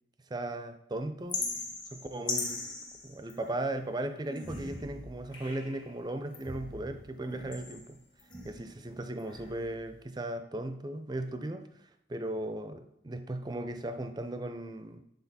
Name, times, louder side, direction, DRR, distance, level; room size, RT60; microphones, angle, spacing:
voice 1, 0.3-1.4 1.9-2.6 3.0-8.0 8.4-11.7 12.1-15.0, right 1 dB, 25° right, 8 dB, 0.5 m, -37 dB
sound 1, 1.3-3.7 4.3-5.9 6.3-8.8 9.2-9.9, left 3 dB, 25° left, 1.2 m, -40 dB
8.1 x 3.9 x 4.1 m, 0.82 s
head